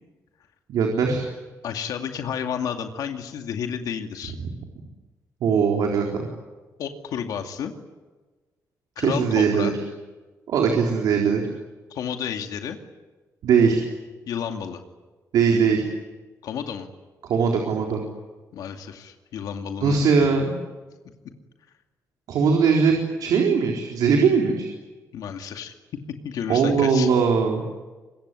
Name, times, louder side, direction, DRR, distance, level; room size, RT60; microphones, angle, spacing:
voice 1, 0.7-1.2 5.4-6.3 9.0-9.7 10.5-11.4 13.4-13.8 15.3-15.9 17.2-18.0 19.8-20.5 22.3-22.9 23.2-24.7 26.5-27.8, right 6 dB, 90° right, 1 dB, 4.0 m, -20 dB
voice 2, 1.6-4.3 6.8-7.7 9.0-9.7 11.9-12.8 14.3-14.8 16.4-16.9 18.5-20.3 25.1-25.7 26.2-27.1, left 8 dB, 85° left, 5 dB, 2.4 m, -31 dB
25.5 x 21.5 x 9.8 m, 1.3 s
cardioid pair, 135°, 6 cm